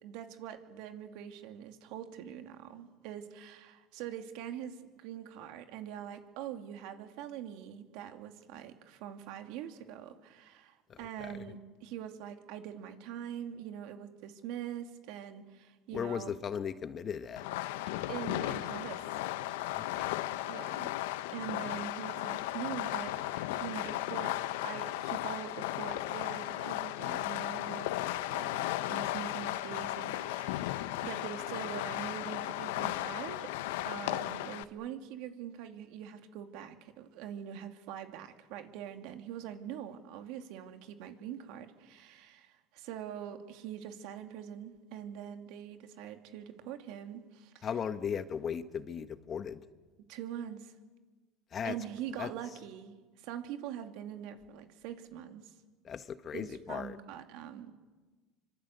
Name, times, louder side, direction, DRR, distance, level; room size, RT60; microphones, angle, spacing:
voice 1, 0.0-16.3 18.1-19.0 20.5-20.9 21.3-24.4 24.6-27.9 28.3-33.5 33.8-47.7 50.1-50.7 51.6-55.5 56.3-57.7, right 10 dB, 70° right, 6 dB, 2.6 m, -43 dB
voice 2, 10.9-11.3 15.9-17.4 19.7-20.1 47.6-49.6 51.5-51.7 52.2-52.3 55.8-57.0, left 7 dB, 35° left, 11 dB, 1.4 m, -37 dB
Fireworks, 17.4-34.6, left 15 dB, 80° left, 1.0 m, -35 dB
26.5 x 25.0 x 8.1 m, 1.3 s
supercardioid pair, 105°, 0 cm